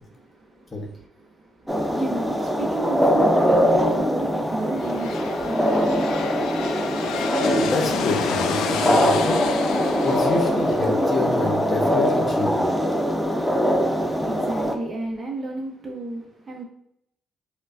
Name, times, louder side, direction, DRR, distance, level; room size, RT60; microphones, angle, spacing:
voice 1, 0.0-6.9 14.1-16.6, right 2 dB, 30° right, 0.8 m, -34 dB
sound 1, 1.7-14.8, equal, ahead, 0.5 m, -22 dB
sound 2, 4.6-12.3, left 7 dB, 85° left, 0.3 m, -31 dB
voice 2, 7.4-9.4 10.0-12.7, left 2 dB, 40° left, 0.8 m, -27 dB
4.9 x 2.2 x 2.4 m
cardioid pair, 90°, 0 cm